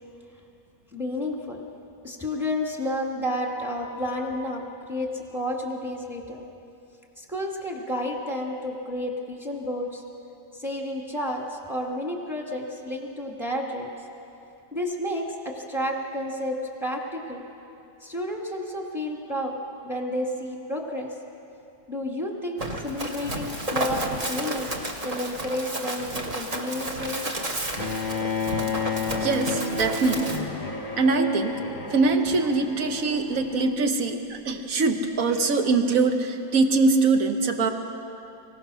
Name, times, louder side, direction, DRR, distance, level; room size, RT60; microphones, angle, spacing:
voice 1, 0.9-1.6 2.0-6.4 7.2-10.0 10.5-13.9 14.7-17.5 18.0-19.6 19.8-21.1 21.9-24.7 25.0-27.3 32.3-32.4, left 1 dB, ahead, 0 dB, 1.9 m, -31 dB
Run, 22.6-30.4, right 1 dB, 20° right, 1.2 m, -32 dB
Bowed string instrument, 27.8-33.8, left 5 dB, 25° left, 1.2 m, -31 dB
voice 2, 29.1-30.4 31.0-31.6 31.9-37.7, right 3 dB, 50° right, 6 dB, 1.4 m, -23 dB
24.5 x 16.5 x 6.4 m, 2.7 s
omnidirectional pair, 2.1 m